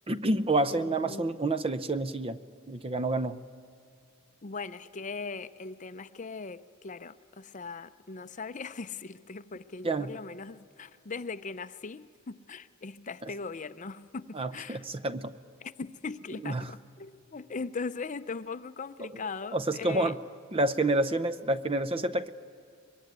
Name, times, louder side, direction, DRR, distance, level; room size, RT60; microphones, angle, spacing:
voice 1, 0.1-2.4 2.7-3.4 9.8-10.1 14.3-15.3 16.4-16.7 19.0-19.1 19.5-20.2 20.5-22.3, right 2 dB, 25° right, 0.6 m, -28 dB
voice 2, 0.7-1.3 4.4-14.9 15.6-20.2, left 4 dB, 35° left, 0.6 m, -39 dB
24.0 x 21.5 x 9.5 m
head